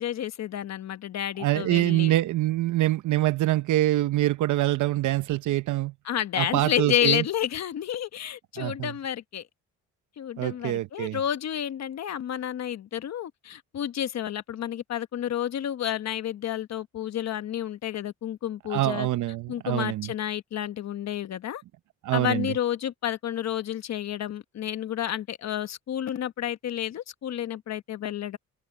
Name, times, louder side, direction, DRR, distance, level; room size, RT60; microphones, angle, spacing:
voice 1, 0.0-2.1 6.0-9.4 10.2-19.1 19.5-21.6 22.1-28.4, left 10 dB, 60° left, 1.2 m, -30 dB
voice 2, 1.4-5.9 6.4-7.2 8.6-8.9 10.4-11.2 18.7-20.1 22.0-22.5, right 15 dB, 80° right, 0.9 m, -25 dB
cardioid pair, 90°, 30 cm